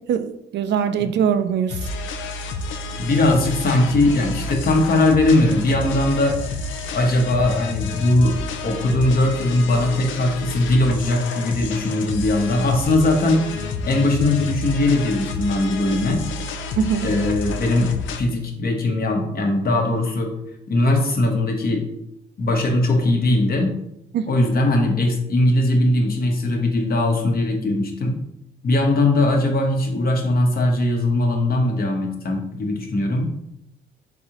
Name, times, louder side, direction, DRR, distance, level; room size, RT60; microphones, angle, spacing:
voice 1, 0.0-1.9 16.8-17.1 24.1-24.3, right 7 dB, 60° right, 0.4 m, -22 dB
sound 1, 1.7-18.2, left 3 dB, 75° left, 0.5 m, -30 dB
voice 2, 3.0-6.4 6.9-8.4 8.6-13.4 13.8-16.2 17.0-20.3 20.7-21.8 22.4-23.7 24.3-28.1 28.6-33.2, left 2 dB, 50° left, 1.0 m, -20 dB
4.0 x 3.7 x 3.0 m
cardioid pair, 90°, 20 cm